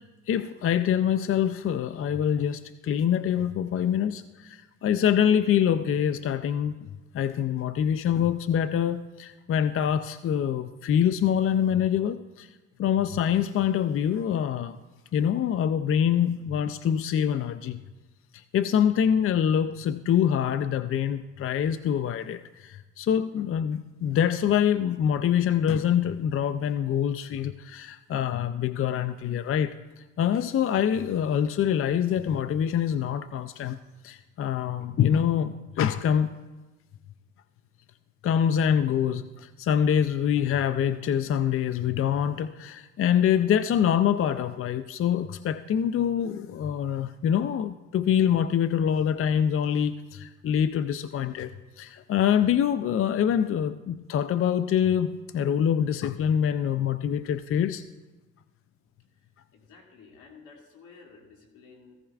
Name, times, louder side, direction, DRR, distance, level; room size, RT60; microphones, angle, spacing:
voice 1, 0.3-6.8 7.1-12.5 12.8-14.8 15.1-17.8 18.3-29.8 30.2-36.3 38.2-57.8, left 9 dB, 45° left, 12 dB, 0.4 m, -25 dB
voice 2, 59.1-62.0, left 4 dB, 85° left, -1 dB, 2.4 m, -53 dB
15.5 x 14.0 x 2.4 m, 1.1 s
cardioid pair, 90°, 30 cm